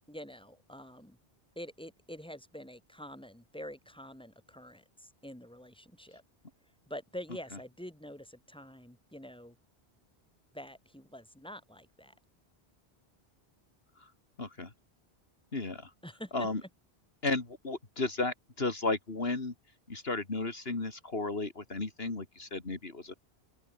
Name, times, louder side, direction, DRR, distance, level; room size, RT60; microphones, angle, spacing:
voice 1, 0.1-1.2 1.6-6.2 6.9-9.6 10.5-12.1 16.0-16.5, equal, 5° left, 3.9 m, -46 dB
voice 2, 14.4-14.7 15.5-15.9 16.3-16.6 17.2-19.5 19.9-23.1, left 3 dB, 65° left, 3.0 m, -34 dB
open air
omnidirectional pair, 1.1 m